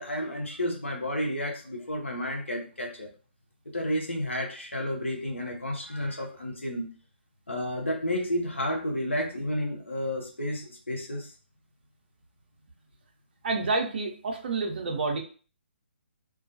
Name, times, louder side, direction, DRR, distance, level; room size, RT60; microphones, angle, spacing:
voice 1, 0.0-3.1 3.7-6.9 7.5-11.3, left 1 dB, 85° left, 1 dB, 0.7 m, -31 dB
voice 2, 13.4-15.2, right 3 dB, 50° right, 2 dB, 0.6 m, -28 dB
2.3 x 2.2 x 2.6 m, 0.38 s
figure-of-eight pair, 135°, 6 cm